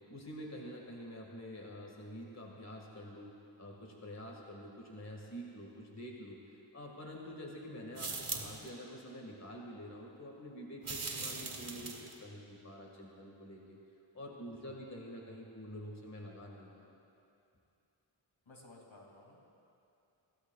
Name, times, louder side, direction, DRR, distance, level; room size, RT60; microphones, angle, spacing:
voice 1, 0.1-6.4 6.7-13.8 14.1-17.0, equal, 30° left, -1 dB, 1.8 m, -47 dB
sound 1, 7.9-8.7 10.8-12.2, right 4 dB, 80° right, 1.8 m, -40 dB
voice 2, 18.5-19.5, left 2 dB, 65° left, -2 dB, 2.5 m, -57 dB
22.5 x 16.5 x 2.3 m, 2.7 s
wide cardioid pair, 70°, 49 cm